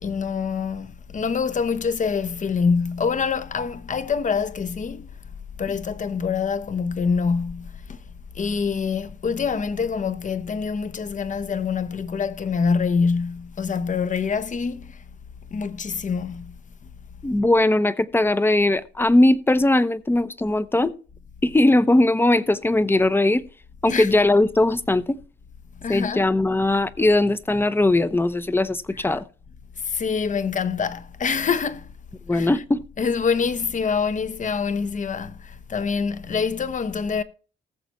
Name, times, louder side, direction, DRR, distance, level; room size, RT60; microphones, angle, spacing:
voice 1, 0.0-5.1 5.6-8.0 8.3-15.0 15.5-16.5 23.9-24.1 25.8-26.3 29.0-29.1 29.8-31.9 32.3-32.5 33.0-37.2, left 5 dB, 40° left, 1.0 m, -25 dB
voice 2, 17.2-20.9 21.4-23.4 23.8-25.2 25.9-29.2 32.3-32.8, left 2 dB, 10° left, 0.8 m, -19 dB
19.5 x 6.8 x 3.1 m
cardioid pair, 90°, 20 cm